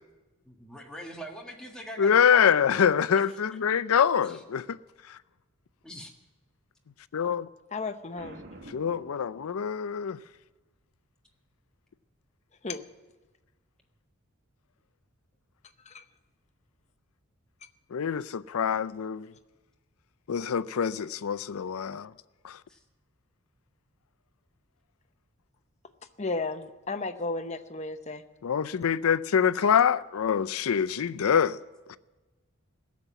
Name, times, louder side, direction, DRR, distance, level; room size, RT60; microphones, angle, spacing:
voice 1, 0.4-2.5 4.2-4.4 5.8-6.1 22.7-22.8, equal, 5° left, 1.6 m, -42 dB
voice 2, 2.0-4.6 5.1-5.2 7.1-7.5 8.7-10.2 17.9-19.3 20.3-22.1 22.4-22.6 28.4-31.6 31.9-32.0, left 7 dB, 85° left, 0.5 m, -25 dB
voice 3, 7.7-8.4 12.6-12.9 15.9-16.0 26.2-28.2, left 3 dB, 30° left, 0.7 m, -33 dB
Boom, 8.2-10.0, right 1 dB, 45° right, 1.5 m, -48 dB
17.0 x 7.4 x 9.1 m
head